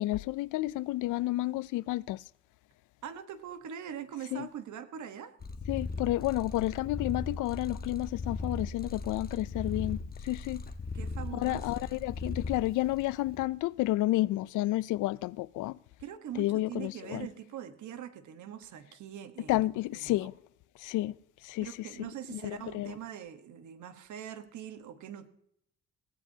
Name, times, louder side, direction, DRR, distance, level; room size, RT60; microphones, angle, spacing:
voice 1, 0.0-2.2 4.3-4.5 5.7-10.6 11.3-15.8 16.4-17.3 19.5-20.4 20.8-21.2 21.4-22.9, left 17 dB, 85° left, 0.5 m, -31 dB
voice 2, 3.0-5.3 10.9-11.9 16.0-20.3 21.6-25.3, right 9 dB, 75° right, 1.3 m, -43 dB
Purr, 5.4-13.5, left 3 dB, 30° left, 1.2 m, -38 dB
22.0 x 16.5 x 2.8 m
cardioid pair, 90°, 30 cm